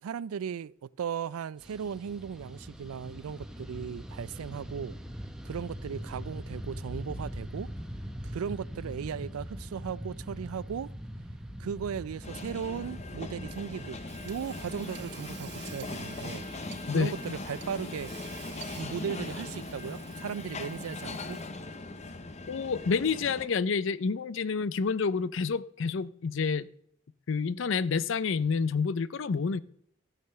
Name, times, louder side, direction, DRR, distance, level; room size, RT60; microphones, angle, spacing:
voice 1, 0.0-5.0 5.4-7.7 8.2-10.9 11.6-14.0 14.2-16.5 16.9-18.1 18.8-21.4, right 7 dB, 85° right, 0.4 m, -37 dB
Fixed-wing aircraft airplane, 1.6-19.0, equal, 5° right, 0.7 m, -43 dB
sound 1, 12.2-23.5, left 2 dB, 30° left, 0.7 m, -40 dB
Hammer / Sawing, 13.5-21.7, right 9 dB, 50° right, 0.8 m, -51 dB
voice 2, 22.5-26.7 27.3-29.6, left 5 dB, 60° left, 0.5 m, -28 dB
13.5 x 6.7 x 6.7 m
head